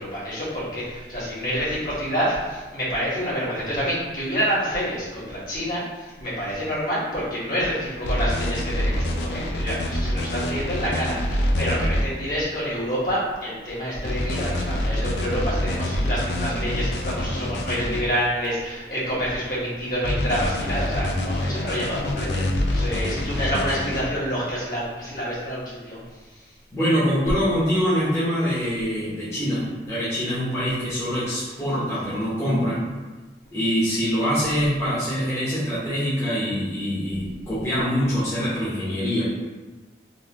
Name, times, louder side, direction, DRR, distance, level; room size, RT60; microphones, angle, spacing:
voice 1, 0.0-26.0, equal, 50° left, -9 dB, 1.5 m, -27 dB
sound 1, 8.0-12.0 14.0-18.0 20.0-24.0, left 1 dB, 75° left, 0.5 m, -26 dB
voice 2, 26.7-32.8 33.5-39.2, equal, 15° left, -11 dB, 1.1 m, -24 dB
4.0 x 3.0 x 3.0 m, 1.2 s
head